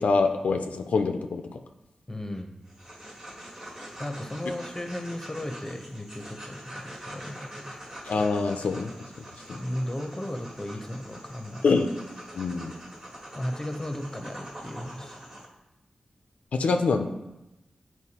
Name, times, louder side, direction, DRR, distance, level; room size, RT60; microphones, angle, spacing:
voice 1, 0.0-1.4 8.0-8.9 9.2-9.6 11.6-11.9 12.4-12.7 16.5-17.1, left 4 dB, 90° left, 6 dB, 0.4 m, -25 dB
voice 2, 2.1-2.6 4.0-7.8 9.5-11.6 13.4-15.2, left 1 dB, 20° left, 5 dB, 0.7 m, -35 dB
sound 1, 2.7-15.5, right 1 dB, 35° right, 1.5 m, -44 dB
8.1 x 4.5 x 2.9 m, 0.95 s
wide cardioid pair, 75°, 2 cm